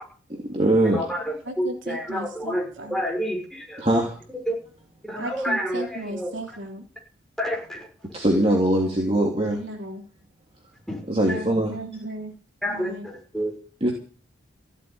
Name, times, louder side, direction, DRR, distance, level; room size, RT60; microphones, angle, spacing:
voice 1, 0.3-1.0 3.8-4.2 8.1-9.6 11.1-11.8 13.8-13.9, right 1 dB, 30° right, -1 dB, 3.3 m, -21 dB
voice 2, 0.8-3.8 4.5-4.6 5.0-6.3 7.4-7.9 10.9-11.0 11.3-11.4 12.6-13.5, equal, ahead, -1 dB, 6.5 m, -29 dB
voice 3, 1.5-3.0 5.2-6.8 9.6-10.0 11.1-12.3 12.7-13.1, right 1 dB, 70° right, 3 dB, 3.4 m, -35 dB
16.0 x 8.1 x 9.9 m, 0.40 s
head